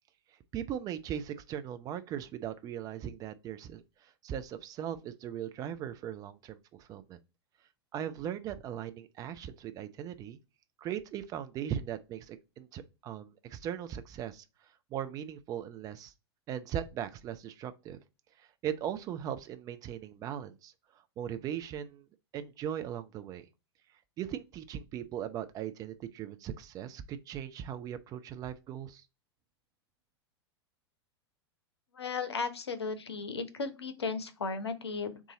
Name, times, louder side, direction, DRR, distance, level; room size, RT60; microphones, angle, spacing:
voice 1, 0.5-7.2 7.9-10.4 10.8-14.4 14.9-16.1 16.5-18.0 18.4-20.7 21.2-22.1 22.3-23.5 24.2-29.0, right 10 dB, 25° right, 0.3 m, -39 dB
voice 2, 31.9-35.2, left 4 dB, 75° left, 0.6 m, -35 dB
3.9 x 2.4 x 4.0 m
figure-of-eight pair, 90°, 14 cm